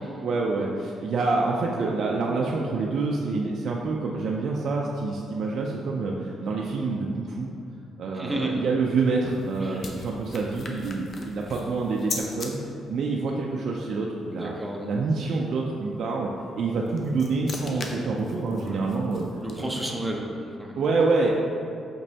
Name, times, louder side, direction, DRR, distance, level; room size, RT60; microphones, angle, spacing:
voice 1, 0.2-7.5 8.0-12.6 12.9-14.5 14.8-16.3 16.6-19.3 19.6-19.9 20.8-21.3, right 3 dB, 65° right, -2 dB, 0.3 m, -27 dB
voice 2, 8.1-8.6 9.6-9.8 14.3-14.9 18.6-18.8 19.4-20.8, right 1 dB, 10° right, -1 dB, 0.5 m, -32 dB
sound 1, 8.9-12.5 16.6-20.0, left 3 dB, 45° left, 0.5 m, -40 dB
5.2 x 3.1 x 2.7 m, 2.5 s
cardioid pair, 90°, 0 cm